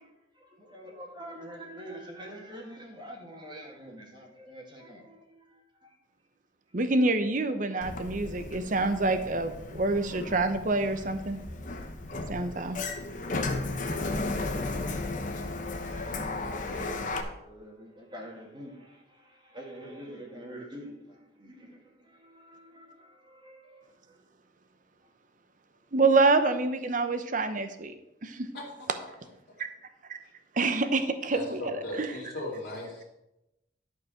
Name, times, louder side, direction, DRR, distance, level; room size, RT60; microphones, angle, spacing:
voice 1, 0.0-6.0 16.6-24.2, equal, 25° right, 0 dB, 1.8 m, -46 dB
voice 2, 6.7-11.4 12.3-12.8 25.9-27.9 28.2-28.5 29.6-29.7 30.1-30.2 30.5-32.2, right 3 dB, 45° right, 9 dB, 0.8 m, -27 dB
Sliding door, 7.8-17.2, left 2 dB, 45° left, 1.0 m, -35 dB
voice 3, 31.3-33.0, left 1 dB, 60° left, -4 dB, 2.6 m, -37 dB
11.5 x 4.8 x 6.3 m, 0.89 s
head